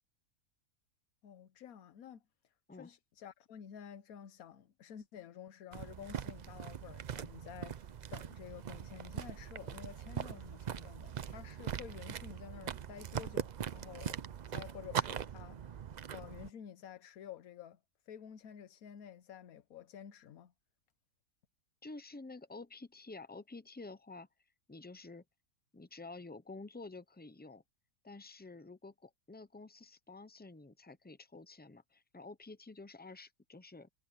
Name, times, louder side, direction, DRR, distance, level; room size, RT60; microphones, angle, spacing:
voice 1, 1.2-15.8 16.1-17.8 18.1-20.5, left 9 dB, 80° left, 1.3 m, -51 dB
sound 1, 5.7-16.5, right 8 dB, 85° right, 0.4 m, -41 dB
voice 2, 21.8-24.3 24.7-25.2 25.7-27.6 28.0-33.9, left 3 dB, 15° left, 0.3 m, -50 dB
omnidirectional pair, 1.5 m